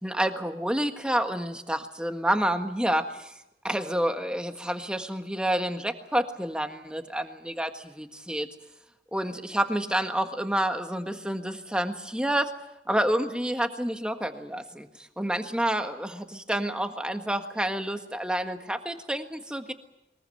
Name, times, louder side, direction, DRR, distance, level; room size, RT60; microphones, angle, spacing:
voice 1, 0.0-3.3 3.6-8.5 9.1-12.5 12.9-19.7, right 1 dB, 5° right, 6 dB, 1.5 m, -29 dB
23.0 x 21.0 x 7.8 m, 0.85 s
head